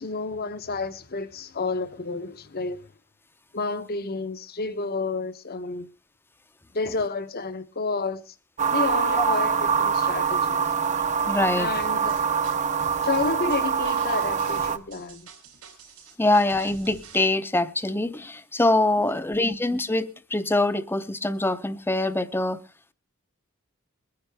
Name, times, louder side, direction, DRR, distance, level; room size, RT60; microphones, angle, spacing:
voice 1, 0.0-2.8 3.5-5.9 6.7-8.3 8.7-10.7 11.6-12.2 13.0-15.3 19.0-19.1, left 3 dB, 45° left, 0.8 m, -30 dB
sound 1, 8.6-14.8, right 6 dB, 30° right, 0.6 m, -24 dB
voice 2, 11.3-11.7 16.2-22.6, left 2 dB, 10° left, 0.6 m, -24 dB
sound 2, 11.7-17.2, right 4 dB, 85° right, 3.5 m, -46 dB
22.5 x 9.7 x 3.4 m
head